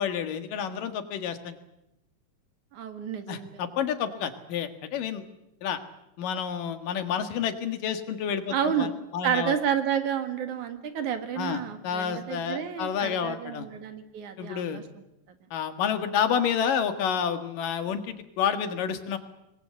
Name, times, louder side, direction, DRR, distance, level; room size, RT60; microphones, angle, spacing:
voice 1, 0.0-1.6 3.3-5.2 5.6-5.8 6.2-9.6 11.4-13.7 14.4-14.8 15.5-19.2, left 8 dB, 85° left, 8 dB, 3.3 m, -29 dB
voice 2, 2.7-3.5 8.5-8.9 9.2-14.8, right 8 dB, 65° right, 8 dB, 3.1 m, -30 dB
26.0 x 21.5 x 7.8 m, 0.86 s
omnidirectional pair, 3.8 m